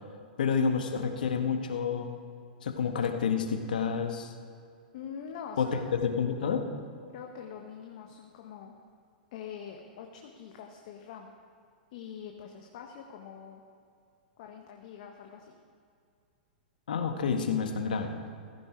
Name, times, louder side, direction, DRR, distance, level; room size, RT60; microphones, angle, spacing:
voice 1, 0.4-2.2 2.6-4.3 5.6-6.7 16.9-18.1, left 6 dB, 70° left, 5 dB, 1.6 m, -29 dB
voice 2, 4.9-5.8 7.1-8.8 9.3-11.3 11.9-13.6 14.4-15.5, left 7 dB, 55° left, 2 dB, 1.4 m, -44 dB
16.0 x 15.0 x 4.6 m, 2.3 s
hypercardioid pair, 105°, 5 cm